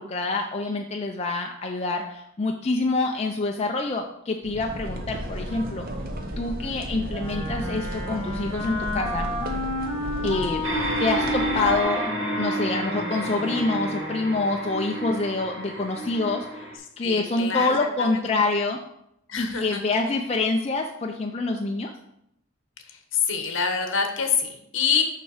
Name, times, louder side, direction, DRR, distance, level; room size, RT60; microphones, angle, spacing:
voice 1, 0.0-5.9 6.4-9.3 10.2-12.1 12.4-18.8 19.4-21.9, left 3 dB, 30° left, 2 dB, 0.4 m, -26 dB
sound 1, 4.4-11.8, equal, 45° right, 0.9 m, -34 dB
Wind instrument woodwind instrument, 7.1-14.5, left 2 dB, 25° right, 2.0 m, -32 dB
sound 2, 10.6-16.8, right 2 dB, 60° right, 1.4 m, -30 dB
voice 2, 17.0-17.7 18.0-18.1 19.3-19.8 22.9-25.0, left 6 dB, 60° left, 4 dB, 1.2 m, -26 dB
6.7 x 5.7 x 4.9 m, 0.79 s
head